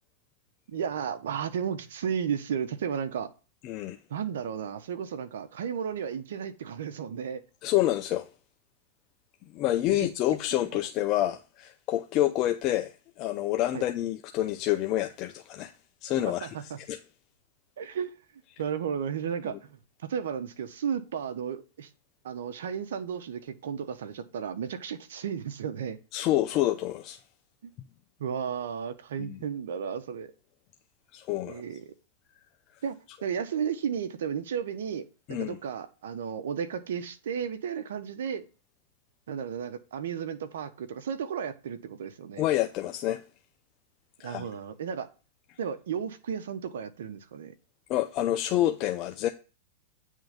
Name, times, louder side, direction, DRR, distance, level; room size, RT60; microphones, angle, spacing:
voice 1, 0.7-3.3 4.1-7.4 9.9-10.1 10.7-10.8 13.7-13.8 16.3-16.8 17.8-18.1 18.6-21.9 22.2-26.0 27.6-27.7 28.2-30.3 31.5-31.9 32.8-33.0 33.2-38.5 39.3-42.4 44.2-45.1 45.6-47.5, right 7 dB, 80° right, 1.1 m, -33 dB
voice 2, 3.6-4.0 7.6-8.3 9.5-15.7 16.0-17.0 19.5-19.6 26.1-27.2 29.2-29.4 31.1-31.6 35.3-35.6 42.4-43.2 44.2-44.5 47.9-49.3, left 14 dB, 40° left, 0.6 m, -28 dB
9.1 x 3.8 x 5.2 m
hypercardioid pair, 135°, 0 cm